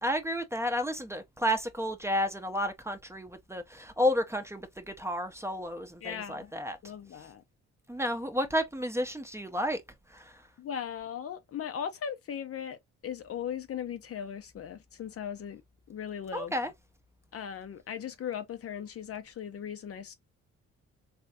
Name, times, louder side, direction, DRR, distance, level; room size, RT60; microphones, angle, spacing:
voice 1, 0.0-6.8 7.9-9.8 10.1-10.3 16.3-16.7, equal, 10° right, 0.6 m, -31 dB
voice 2, 6.0-6.5 6.8-7.4 10.6-12.8 13.0-15.6 15.9-16.5 17.3-20.2, left 8 dB, 50° left, 0.6 m, -38 dB
3.4 x 3.1 x 2.7 m
cardioid pair, 90°, 30 cm